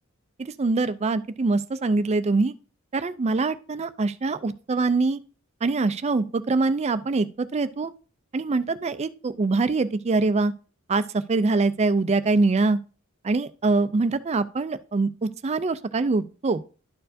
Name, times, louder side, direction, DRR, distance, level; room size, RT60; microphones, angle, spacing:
voice 1, 0.4-2.5 2.9-5.2 5.6-7.9 8.3-10.5 10.9-12.8 13.2-16.6, right 3 dB, 30° right, 0.4 m, -24 dB
12.0 x 4.5 x 2.6 m
head